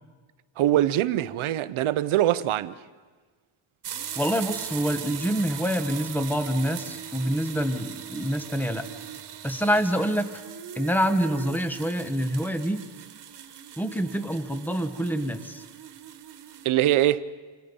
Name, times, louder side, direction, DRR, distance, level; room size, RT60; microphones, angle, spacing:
voice 1, 0.6-2.7 16.6-17.2, right 13 dB, 90° right, 1.0 m, -23 dB
sound 1, 3.8-16.7, right 8 dB, 55° right, 1.6 m, -40 dB
voice 2, 4.1-8.8 9.4-10.4 10.7-12.9 13.8-15.6, equal, 5° left, 1.3 m, -26 dB
28.0 x 28.0 x 5.4 m
wide cardioid pair, 165°, 47 cm